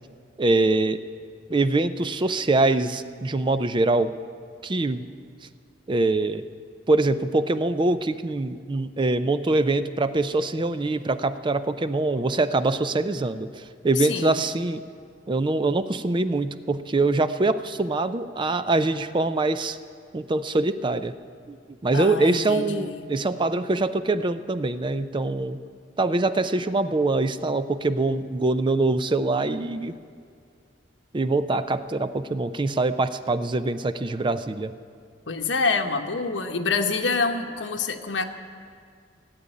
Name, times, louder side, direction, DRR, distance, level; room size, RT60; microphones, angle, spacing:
voice 1, 0.4-1.0 1.5-4.1 4.6-5.0 5.9-6.4 6.9-14.8 15.3-19.8 20.1-21.1 21.5-21.6 21.8-25.6 26.0-30.0 31.1-34.7, right 2 dB, 25° right, 12 dB, 0.4 m, -24 dB
voice 2, 14.0-14.4 21.9-23.0 35.3-38.3, left 4 dB, 85° left, 4 dB, 1.0 m, -26 dB
16.5 x 8.4 x 9.9 m, 2.2 s
head